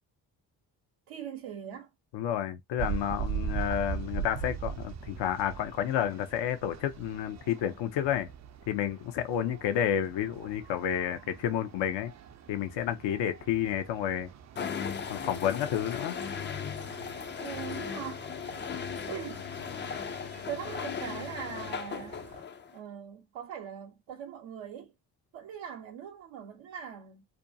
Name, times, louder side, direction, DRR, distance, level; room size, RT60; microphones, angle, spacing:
voice 1, 1.1-1.9 17.4-18.3 19.1-19.5 20.5-22.3 22.7-24.9 25.3-27.2, right 8 dB, 75° right, 0.7 m, -41 dB
voice 2, 2.1-8.3 8.7-12.1 12.5-14.3 15.1-16.2, left 10 dB, 70° left, 0.6 m, -30 dB
sound 1, 2.8-22.4, right 8 dB, 40° right, 0.4 m, -42 dB
sound 2, 14.6-22.8, left 6 dB, 25° left, 0.4 m, -37 dB
2.5 x 2.2 x 2.6 m
supercardioid pair, 55°, 46 cm